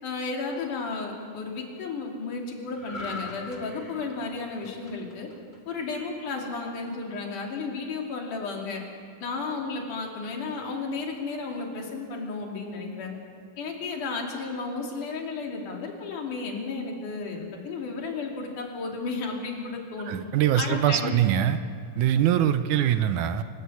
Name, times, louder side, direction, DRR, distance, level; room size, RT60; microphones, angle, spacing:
voice 1, 0.0-5.3 5.7-8.8 9.2-13.2 13.6-20.1 20.6-21.2, left 4 dB, 75° left, 0 dB, 4.2 m, -33 dB
sound 1, 2.7-6.2 6.6-6.9, left 2 dB, 25° left, 1.8 m, -42 dB
voice 2, 20.1-21.6 22.0-23.4, right 10 dB, 80° right, 10 dB, 2.2 m, -23 dB
28.0 x 12.5 x 8.5 m, 2.1 s
omnidirectional pair, 3.7 m